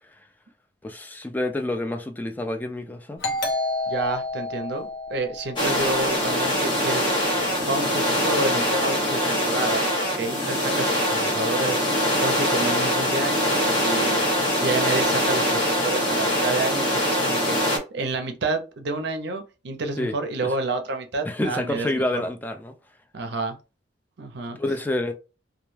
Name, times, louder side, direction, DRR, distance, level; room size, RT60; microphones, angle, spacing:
voice 1, 0.8-3.2 20.0-20.1 20.4-20.5 21.2-22.7 24.6-25.1, left 1 dB, 10° left, 0.3 m, -28 dB
Doorbell, 3.2-6.6, left 2 dB, 60° left, 0.7 m, -30 dB
voice 2, 3.9-7.0 7.6-11.8 12.2-14.3 14.6-22.2 23.1-23.6 24.2-24.6, right 3 dB, 60° right, 0.5 m, -29 dB
sound 1, 5.6-17.8, equal, 25° left, 0.8 m, -23 dB
2.2 x 2.1 x 3.1 m
head